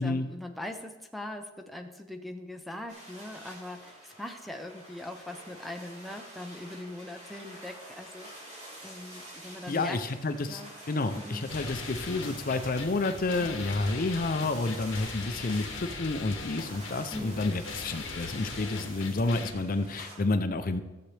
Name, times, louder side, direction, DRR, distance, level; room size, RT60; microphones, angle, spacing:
voice 1, 0.0-10.0 10.5-10.7 11.2-11.5 17.1-17.7, left 1 dB, ahead, 3 dB, 0.6 m, -41 dB
sound 1, 2.9-20.2, right 1 dB, 35° right, 3.2 m, -47 dB
voice 2, 9.7-20.8, left 3 dB, 45° left, 9 dB, 0.5 m, -30 dB
sound 2, 11.5-19.5, left 4 dB, 70° left, 1.4 m, -40 dB
14.5 x 7.4 x 3.3 m, 1.1 s
head